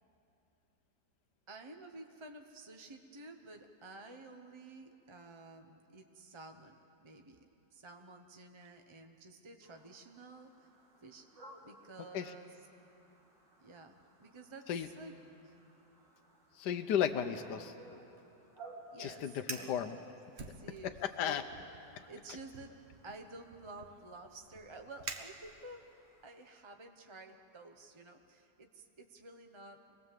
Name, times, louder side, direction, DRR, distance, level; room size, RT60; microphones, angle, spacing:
voice 1, 1.5-6.8 7.0-7.4 7.7-10.7 11.0-11.3 11.6-12.5 13.6-15.1 15.4-15.6 18.9-20.1 20.5-21.0 21.2-21.5 22.1-22.8 23.0-25.8 26.2-29.9, right 2 dB, 25° right, 5 dB, 0.6 m, -52 dB
sound 1, 9.6-26.5, right 2 dB, 80° right, 3.0 m, -59 dB
voice 2, 16.6-17.7 19.0-20.0 21.2-21.4, left 9 dB, 75° left, 7 dB, 1.3 m, -34 dB
Fire, 19.3-19.8 20.3-21.1 21.5-21.8 22.5-25.9, right 4 dB, 45° right, 1.1 m, -47 dB
26.0 x 19.0 x 7.6 m, 2.8 s
omnidirectional pair, 1.9 m